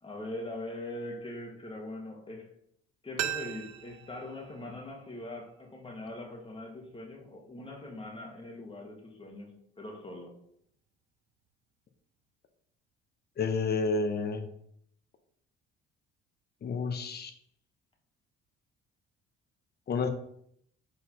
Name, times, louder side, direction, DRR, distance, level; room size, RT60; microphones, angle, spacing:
voice 1, 0.0-2.6 3.0-10.4, left 1 dB, 15° left, 1.4 m, -42 dB
sound 1, 3.2-6.0 6.3-6.4, right 10 dB, 55° right, 0.4 m, -40 dB
voice 2, 13.4-14.5 16.6-17.3 19.9-20.1, left 4 dB, 35° left, 0.7 m, -30 dB
4.2 x 4.1 x 2.9 m
hypercardioid pair, 60°, 30 cm